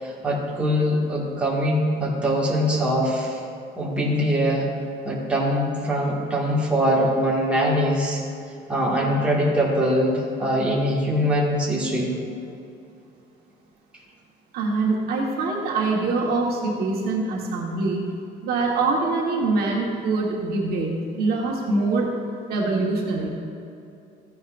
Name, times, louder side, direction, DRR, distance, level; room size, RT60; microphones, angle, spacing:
voice 1, 0.0-3.4 3.8-4.7 5.0-8.2 8.7-12.1, equal, 5° right, -6 dB, 1.9 m, -22 dB
voice 2, 14.5-18.0 18.4-22.1 22.5-23.3, right 3 dB, 55° right, -2 dB, 1.5 m, -24 dB
15.0 x 9.3 x 2.6 m, 2.5 s
cardioid pair, 160°, 18 cm